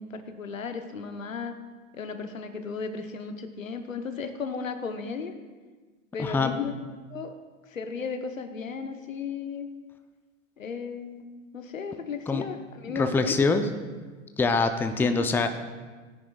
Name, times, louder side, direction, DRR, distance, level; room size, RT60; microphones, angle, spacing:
voice 1, 0.0-1.6 1.9-5.3 6.1-6.8 7.1-7.4 7.7-9.7 10.6-11.3 11.5-13.5 15.0-15.3, left 5 dB, 90° left, 8 dB, 1.0 m, -35 dB
voice 2, 6.2-6.5 12.3-12.4 13.0-13.6 14.4-15.5, left 4 dB, 5° left, 7 dB, 0.5 m, -24 dB
16.5 x 9.9 x 2.3 m, 1.4 s
hypercardioid pair, 95°, 39 cm